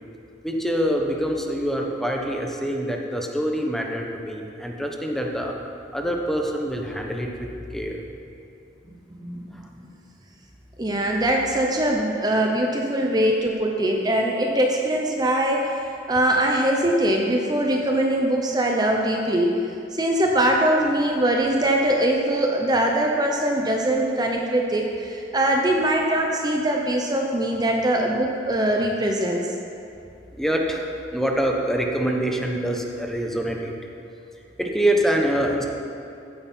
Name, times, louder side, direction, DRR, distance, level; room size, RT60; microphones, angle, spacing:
voice 1, 0.4-5.6 5.9-8.0 30.4-33.7 34.6-35.6, right 1 dB, ahead, 1 dB, 1.1 m, -25 dB
voice 2, 8.9-9.9 10.8-15.8 16.1-19.5 19.9-29.4, right 1 dB, 25° right, 0 dB, 0.9 m, -22 dB
15.0 x 9.5 x 4.5 m, 2.7 s
head